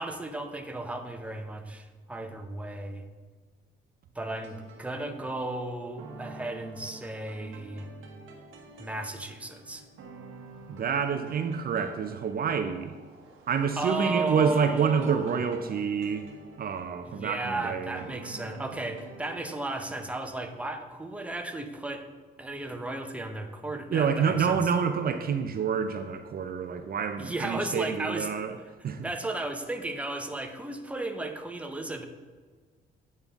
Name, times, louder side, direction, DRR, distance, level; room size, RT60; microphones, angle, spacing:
voice 1, 0.0-3.1 4.1-7.9 8.8-9.8 13.8-15.4 17.1-22.0 22.4-24.6 27.2-28.3 29.0-32.1, right 2 dB, 5° right, 5 dB, 0.7 m, -34 dB
sound 1, 4.3-20.7, right 3 dB, 85° right, 1.2 m, -48 dB
voice 2, 10.7-13.0 13.5-16.3 16.6-18.0 23.9-28.6 28.8-29.1, right 6 dB, 50° right, 8 dB, 0.5 m, -28 dB
8.9 x 5.5 x 3.5 m, 1.5 s
cardioid pair, 90°, 20 cm